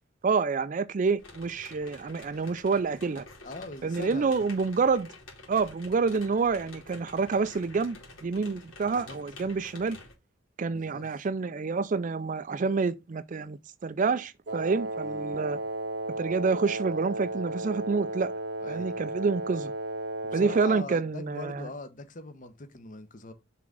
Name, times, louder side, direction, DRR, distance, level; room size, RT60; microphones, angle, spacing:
voice 1, 0.2-3.2 3.8-5.1 5.5-10.0 10.6-15.6 16.2-18.3 18.7-19.7 20.3-21.7, right 4 dB, 40° right, 0.4 m, -28 dB
sound 1, 1.2-10.1, left 2 dB, 80° left, 3.2 m, -49 dB
voice 2, 3.4-4.5 8.8-9.2 10.7-11.3 15.0-15.4 18.6-19.0 20.2-23.3, left 2 dB, 40° left, 0.9 m, -42 dB
Wind instrument woodwind instrument, 14.5-20.9, right 2 dB, 55° right, 0.7 m, -34 dB
5.9 x 3.7 x 6.0 m
head